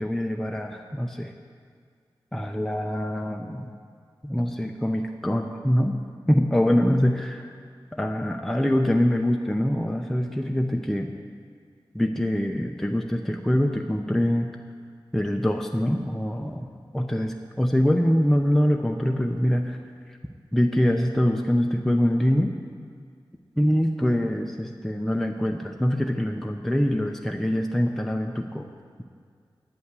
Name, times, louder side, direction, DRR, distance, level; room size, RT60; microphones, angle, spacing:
voice 1, 0.0-1.3 2.3-3.7 4.2-6.0 6.3-7.5 8.0-11.1 11.9-14.5 15.1-16.7 16.9-19.8 20.5-22.5 23.6-28.7, equal, 5° left, 2 dB, 0.5 m, -24 dB
9.3 x 5.7 x 8.1 m, 2.1 s
wide cardioid pair, 100°, 9 cm